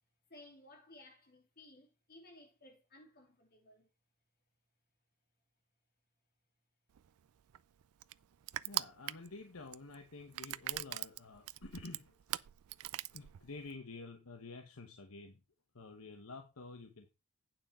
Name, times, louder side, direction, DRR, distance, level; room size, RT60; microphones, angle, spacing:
voice 1, 0.3-3.9, left 1 dB, 45° left, 3.4 m, -58 dB
Crushing, 6.9-13.8, right 15 dB, 75° right, 0.4 m, -42 dB
voice 2, 8.6-12.2 13.1-15.4 15.7-17.1, left 3 dB, 70° left, 1.1 m, -50 dB
9.1 x 6.0 x 4.9 m
head